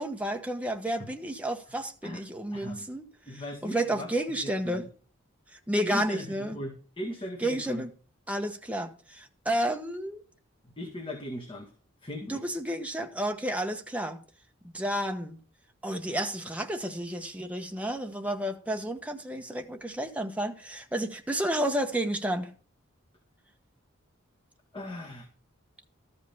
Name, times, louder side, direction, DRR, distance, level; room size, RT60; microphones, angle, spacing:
voice 1, 0.0-3.1 3.3-4.9 5.7-6.6 7.4-7.9 8.3-10.2 12.3-14.2 14.7-15.4 15.8-22.5, right 1 dB, 5° right, 1.1 m, -31 dB
voice 2, 2.5-2.9 3.3-4.1 4.4-4.8 5.8-7.8 10.8-11.7 12.0-12.4 24.7-25.3, left 1 dB, 25° left, 1.7 m, -38 dB
13.5 x 5.4 x 5.8 m
head